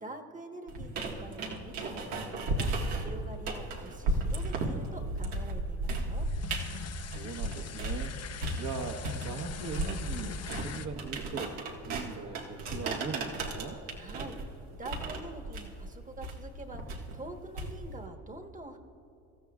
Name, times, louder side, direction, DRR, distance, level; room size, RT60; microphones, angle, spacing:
voice 1, 0.0-2.7 2.9-6.3 13.9-16.8 17.1-18.8, right 2 dB, 20° right, 5 dB, 1.3 m, -46 dB
sound 1, 0.7-8.1 8.4-18.0, right 2 dB, 85° right, 1.8 m, -35 dB
sound 2, 6.1-10.9, left 8 dB, 35° left, 0.8 m, -43 dB
voice 2, 6.9-8.2 8.5-11.6 11.8-13.8, right 4 dB, 40° right, 1 dB, 1.2 m, -40 dB
26.0 x 14.0 x 2.4 m, 2.9 s
supercardioid pair, 80°, 43 cm